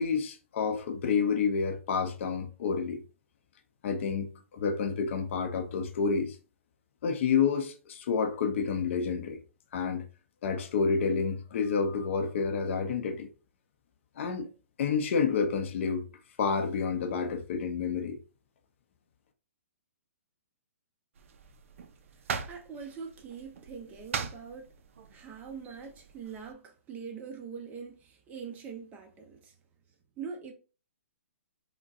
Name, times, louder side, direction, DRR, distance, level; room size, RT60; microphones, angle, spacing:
voice 1, 0.0-3.0 3.8-6.4 7.0-9.4 9.7-10.1 10.4-13.3 14.2-14.5 14.8-16.1 16.4-18.2, left 5 dB, 55° left, 0.6 m, -29 dB
sound 1, 21.1-26.5, right 6 dB, 60° right, 0.4 m, -41 dB
voice 2, 22.4-24.7 25.1-29.5 30.2-30.5, right 6 dB, 20° right, 0.6 m, -43 dB
3.8 x 2.1 x 2.5 m
hypercardioid pair, 135°, 8 cm